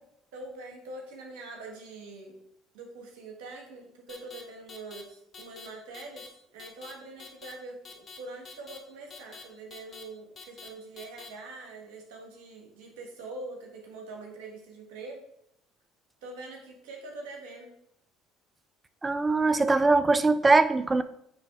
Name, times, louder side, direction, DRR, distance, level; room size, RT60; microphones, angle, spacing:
voice 1, 0.3-2.4 2.7-15.2 16.2-17.7, right 2 dB, 75° right, 0 dB, 1.7 m, -44 dB
sound 1, 4.1-4.4 4.7-5.0 5.3-5.7 5.9-6.3 6.6-6.9 7.2-7.5 7.8-8.2 8.4-8.8 9.1-9.4 9.7-10.0 10.4-10.7 11.0-11.3, left 5 dB, 45° left, 1.1 m, -46 dB
voice 2, 19.0-21.0, right 3 dB, 20° right, 13 dB, 0.5 m, -22 dB
9.0 x 3.2 x 3.6 m, 0.77 s
hypercardioid pair, 65°, 0 cm